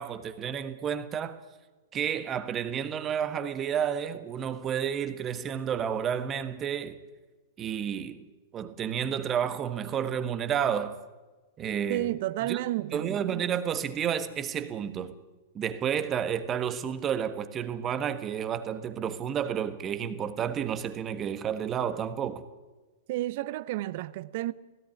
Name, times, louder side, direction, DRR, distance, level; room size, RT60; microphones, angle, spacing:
voice 1, 0.0-1.4 1.9-7.0 7.6-8.2 8.5-11.0 11.6-12.1 12.4-12.6 12.9-15.1 15.5-22.4, right 8 dB, 25° right, 1.5 m, -31 dB
voice 2, 11.9-13.2 23.1-24.5, right 16 dB, 50° right, 0.8 m, -31 dB
17.5 x 17.0 x 9.5 m
figure-of-eight pair, 105°, 0 cm